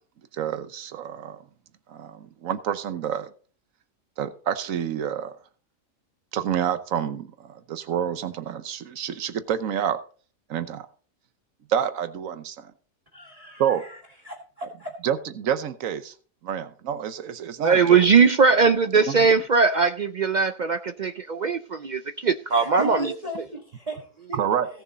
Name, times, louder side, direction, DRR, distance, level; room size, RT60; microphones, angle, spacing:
voice 1, 0.3-1.4 1.9-3.3 4.2-5.3 6.3-10.0 10.5-10.9 11.7-12.7 13.6-13.9 14.6-14.7 15.0-16.1 16.4-18.0 18.9-19.3 24.4-24.7, right 9 dB, 90° right, 1.2 m, -28 dB
voice 2, 13.1-14.9 22.5-24.4, right 1 dB, 30° right, 1.5 m, -36 dB
voice 3, 17.6-23.1, right 5 dB, 60° right, 0.5 m, -20 dB
16.5 x 6.6 x 4.0 m
omnidirectional pair, 1.4 m